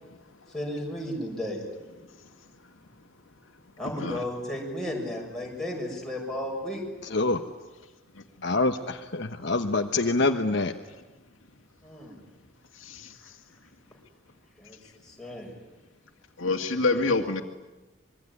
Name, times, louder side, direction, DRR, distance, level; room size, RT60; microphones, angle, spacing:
voice 1, 0.5-1.6 3.8-6.8 11.8-12.2 13.2-13.3 14.6-14.8 15.0-15.5, left 1 dB, 5° left, -2 dB, 6.6 m, -34 dB
voice 2, 7.1-7.4 8.4-10.7, left 3 dB, 55° left, 5 dB, 1.2 m, -25 dB
voice 3, 12.8-13.2 16.4-17.4, left 3 dB, 75° left, 4 dB, 2.2 m, -27 dB
25.5 x 23.0 x 9.9 m, 1.1 s
head